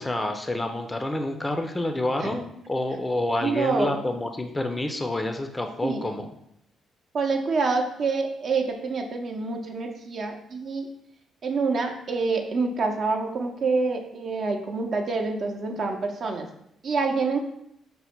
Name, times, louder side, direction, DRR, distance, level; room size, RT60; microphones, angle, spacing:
voice 1, 0.0-6.3, left 1 dB, 15° left, 6 dB, 0.4 m, -28 dB
voice 2, 3.4-4.0 5.8-6.0 7.1-10.9 11.4-16.5 16.8-17.4, right 4 dB, 55° right, 3 dB, 0.6 m, -26 dB
5.3 x 2.1 x 4.4 m, 0.75 s
cardioid pair, 90°, 0 cm